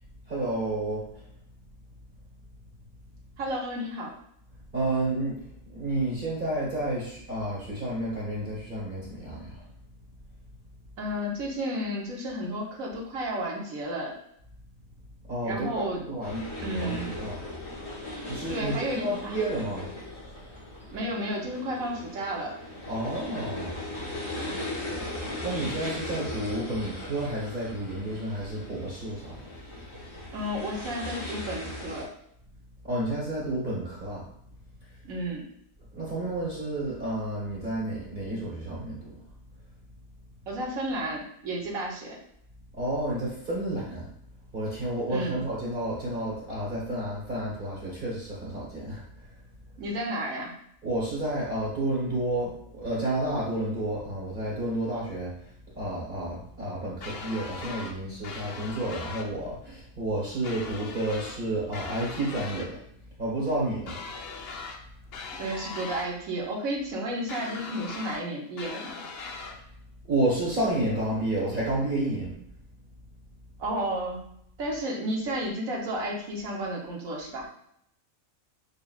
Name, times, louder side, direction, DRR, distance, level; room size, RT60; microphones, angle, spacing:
voice 1, 0.3-1.2 4.7-9.6 15.3-16.5 16.8-17.4 18.2-19.9 22.9-23.8 24.9-25.0 25.4-29.5 32.8-34.2 34.9-35.0 35.9-39.1 42.7-44.1 44.5-49.3 50.8-62.8 63.2-64.0 70.0-72.3, right 1 dB, 40° right, -7 dB, 1.2 m, -31 dB
voice 2, 3.4-4.1 11.0-14.1 15.4-16.0 16.6-17.1 18.5-19.4 20.9-22.6 30.3-32.1 35.0-35.4 40.5-42.2 45.1-45.3 49.8-50.5 65.4-69.0 73.6-74.2 74.6-77.5, right 1 dB, 75° right, -2 dB, 1.4 m, -32 dB
sound 1, 16.2-32.0, left 1 dB, 25° left, 0.9 m, -38 dB
sound 2, 57.0-57.9 58.2-59.3 60.4-61.4 61.7-62.7 63.9-64.8 65.1-66.1 67.3-68.2 68.6-69.6, left 4 dB, 60° left, 0.7 m, -40 dB
6.9 x 2.4 x 2.4 m, 0.73 s
omnidirectional pair, 1.5 m